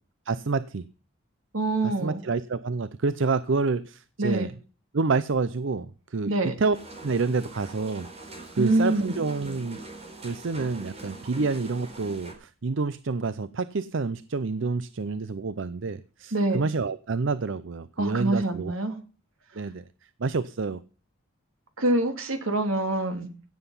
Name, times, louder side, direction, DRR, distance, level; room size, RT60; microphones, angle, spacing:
voice 1, 0.3-0.9 1.8-4.5 4.9-6.8 7.0-8.1 8.5-9.8 10.2-18.8 19.5-19.8 20.2-20.8, right 4 dB, 60° right, 16 dB, 0.5 m, -28 dB
voice 2, 1.5-2.2 4.2-4.5 6.3-6.5 8.6-9.1 16.3-16.6 18.0-19.0 21.8-23.3, right 2 dB, 80° right, 7 dB, 2.6 m, -25 dB
sound 1, 6.7-12.3, right 2 dB, 30° right, 4.3 m, -43 dB
16.5 x 8.0 x 5.6 m, 0.36 s
head